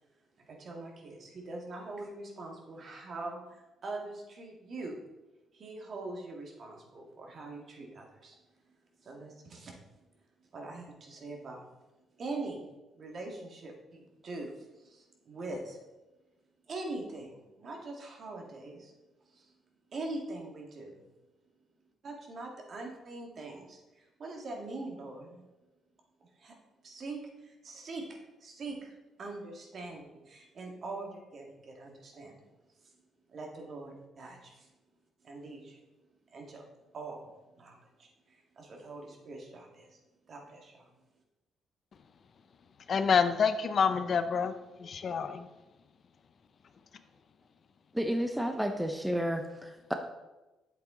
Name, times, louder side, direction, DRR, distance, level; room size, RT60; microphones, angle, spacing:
voice 1, 0.5-5.0 5.5-8.4 9.0-9.7 10.5-11.6 12.2-12.7 13.0-15.8 16.7-18.9 19.3-19.5 19.9-21.0 22.0-25.4 26.4-26.6 26.8-32.4 33.3-34.7 35.2-35.8 36.3-36.6 36.9-40.0 40.3-40.9, right 2 dB, 50° right, 1 dB, 1.9 m, -43 dB
voice 2, 42.9-44.5 44.8-45.5, left 6 dB, 50° left, 10 dB, 0.6 m, -27 dB
voice 3, 47.9-49.9, equal, 5° right, 5 dB, 0.7 m, -31 dB
8.3 x 7.7 x 3.8 m, 1.1 s
cardioid pair, 90°, 0 cm